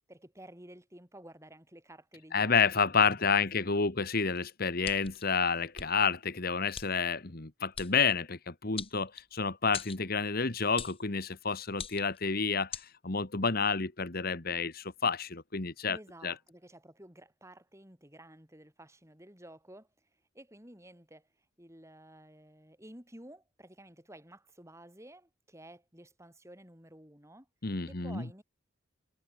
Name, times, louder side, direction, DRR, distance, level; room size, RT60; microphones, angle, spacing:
voice 1, 0.1-3.9 15.9-19.9 20.3-21.3 21.6-27.5 27.8-28.4, right 1 dB, 15° right, 5.9 m, -53 dB
voice 2, 2.3-12.7 13.0-16.0 16.2-16.3 27.6-28.2, left 5 dB, 50° left, 1.5 m, -29 dB
sound 1, 4.8-5.2 5.7-5.9 6.7-6.9 7.7-7.9 8.8-9.4 9.7-10.0 10.8-11.0 11.7-12.2 12.7-12.9, left 7 dB, 25° left, 1.6 m, -41 dB
head